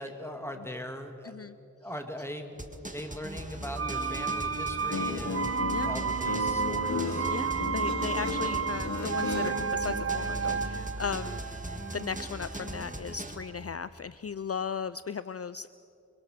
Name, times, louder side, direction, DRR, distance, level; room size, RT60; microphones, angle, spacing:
voice 1, 0.0-1.3 1.8-7.3, equal, 10° left, 5 dB, 2.5 m, -40 dB
voice 2, 1.2-1.5 5.7-5.9 7.3-11.4 11.9-15.7, left 6 dB, 50° left, 15 dB, 0.5 m, -36 dB
sound 1, 2.6-13.4, right 1 dB, 25° right, 2.0 m, -39 dB
sound 2, 3.8-13.5 13.8-13.9, right 5 dB, 50° right, 0.6 m, -32 dB
Guitar, 4.7-10.0, left 4 dB, 70° left, 1.5 m, -35 dB
25.0 x 24.0 x 6.8 m, 2.7 s
wide cardioid pair, 40°, 30 cm